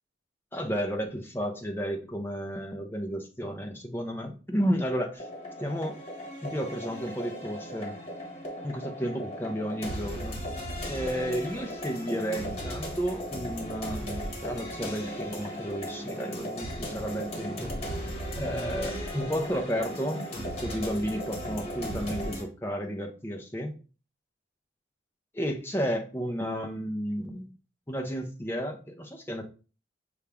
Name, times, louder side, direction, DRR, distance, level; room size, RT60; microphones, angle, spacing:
voice 1, 0.5-5.3 5.6-6.0 6.4-8.0 8.6-10.4 10.9-14.0 14.4-17.7 18.4-20.2 20.6-23.7 25.3-27.5 27.9-29.4, equal, 10° left, 2 dB, 0.5 m, -32 dB
sound 1, 5.2-22.4, equal, 35° left, 1.2 m, -36 dB
5.6 x 2.4 x 3.4 m, 0.35 s
head